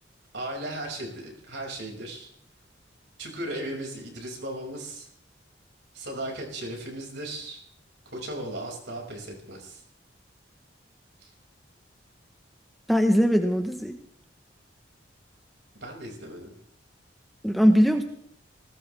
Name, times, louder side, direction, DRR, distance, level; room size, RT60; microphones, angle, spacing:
voice 1, 0.3-2.3 3.2-5.1 5.9-7.6 8.1-9.8 11.2-11.3 15.8-16.6, right 1 dB, 65° right, 0 dB, 6.1 m, -36 dB
voice 2, 12.9-14.0 17.4-18.0, equal, ahead, 4 dB, 1.1 m, -20 dB
19.5 x 19.0 x 3.5 m, 0.65 s
head